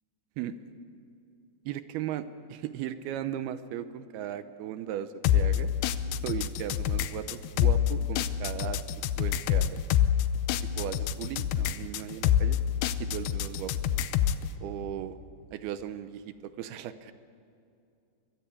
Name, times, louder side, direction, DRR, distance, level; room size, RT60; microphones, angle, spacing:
voice 1, 1.6-5.7 6.2-8.8 9.2-9.8 10.8-12.6 13.0-13.7 14.6-15.2 15.5-17.1, right 10 dB, 80° right, 11 dB, 2.7 m, -37 dB
sound 1, 5.2-14.5, left 10 dB, 85° left, 2.7 m, -27 dB
24.0 x 22.0 x 8.4 m, 2.6 s
omnidirectional pair, 4.6 m